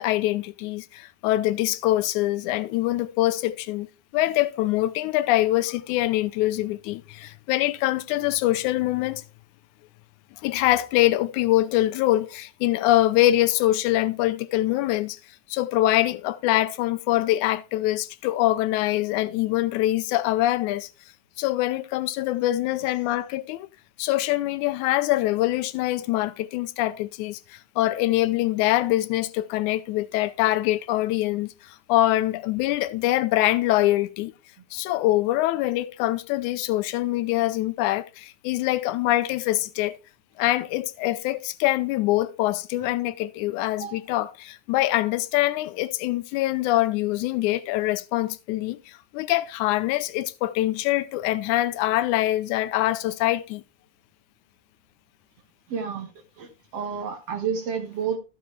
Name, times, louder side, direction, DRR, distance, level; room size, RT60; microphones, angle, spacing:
voice 1, 0.0-3.9 4.1-9.2 10.4-15.2 15.5-20.9 21.4-23.7 24.0-34.3 34.7-40.0 40.4-53.6, left 15 dB, 90° left, 2.1 m, -24 dB
voice 2, 43.8-44.2 55.7-56.1 56.4-58.2, right 7 dB, 60° right, 2.4 m, -30 dB
14.0 x 6.5 x 3.2 m
omnidirectional pair, 3.4 m